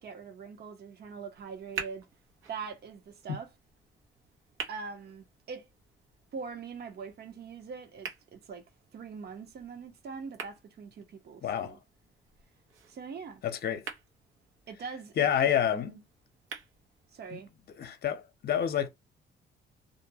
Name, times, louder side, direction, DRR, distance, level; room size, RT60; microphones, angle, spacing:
voice 1, 0.0-2.1 2.5-3.5 4.7-5.7 6.3-11.8 12.9-13.4 14.7-16.0 17.1-17.5, right 5 dB, 55° right, 0.9 m, -43 dB
sound 1, 1.3-17.3, right 6 dB, 85° right, 1.0 m, -48 dB
voice 2, 11.4-11.8 13.4-13.8 15.2-15.9 17.3-17.4 17.8-18.9, left 9 dB, 55° left, 0.7 m, -28 dB
2.6 x 2.2 x 2.7 m
cardioid pair, 90°, 20 cm